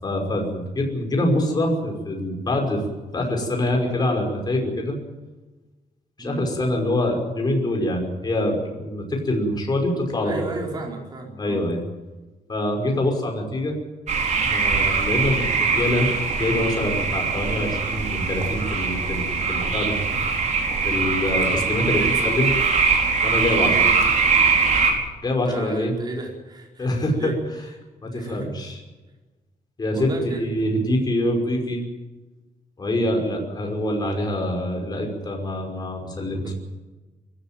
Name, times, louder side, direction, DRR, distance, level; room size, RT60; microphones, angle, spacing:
voice 1, 0.0-2.8 3.1-5.0 6.2-10.3 11.4-11.8 12.5-13.8 14.4-16.1 16.3-19.2 19.5-20.0 20.8-22.5 23.2-23.8 25.2-25.9 26.8-27.3 28.0-28.8 29.8-31.8 32.8-36.5, left 1 dB, 30° left, 1 dB, 5.5 m, -25 dB
voice 2, 10.2-11.6 21.9-22.2 23.6-24.0 25.4-27.3 28.1-28.5 29.9-30.4 36.4-36.5, right 3 dB, 30° right, 0 dB, 4.9 m, -33 dB
sound 1, 14.1-24.9, right 5 dB, 55° right, 4.9 m, -22 dB
24.0 x 14.5 x 9.2 m, 1.2 s
wide cardioid pair, 145°, 14 cm